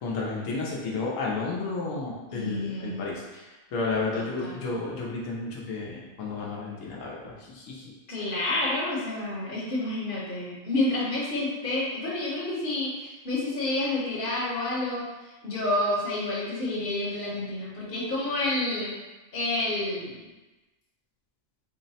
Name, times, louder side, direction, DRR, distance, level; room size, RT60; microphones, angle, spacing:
voice 1, 0.0-7.9, left 3 dB, 85° left, -3 dB, 1.1 m, -32 dB
voice 2, 2.3-3.1 4.1-4.6 8.1-15.1 15.4-18.9 19.3-20.2, left 2 dB, 45° left, -5 dB, 1.1 m, -29 dB
3.9 x 2.1 x 4.0 m, 1.1 s
omnidirectional pair, 1.3 m